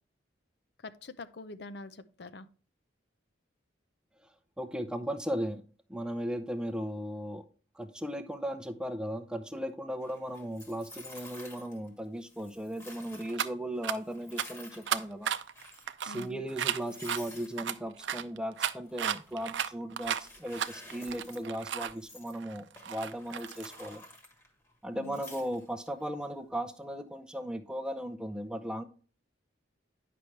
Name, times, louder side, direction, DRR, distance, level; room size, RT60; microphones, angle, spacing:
voice 1, 0.8-2.5 16.1-16.4 24.9-25.2, left 2 dB, 60° left, 0.5 m, -45 dB
voice 2, 4.6-5.6 5.9-7.4 7.7-15.3 16.0-24.0 24.8-28.8, equal, 5° right, 0.6 m, -37 dB
sound 1, 10.0-11.9 12.2-13.5 13.9-15.1 15.4-15.9 16.3-16.4 16.7-17.7 18.8-19.7 20.0-21.4 21.7-22.4 22.8-24.7 25.0-25.9, left 1 dB, 15° left, 1.5 m, -51 dB
sound 2, 13.3-13.5 13.8-14.0 14.4-14.5 14.9-17.2 17.6-21.9 22.3-24.0, right 9 dB, 75° right, 0.5 m, -34 dB
9.9 x 5.9 x 3.2 m
head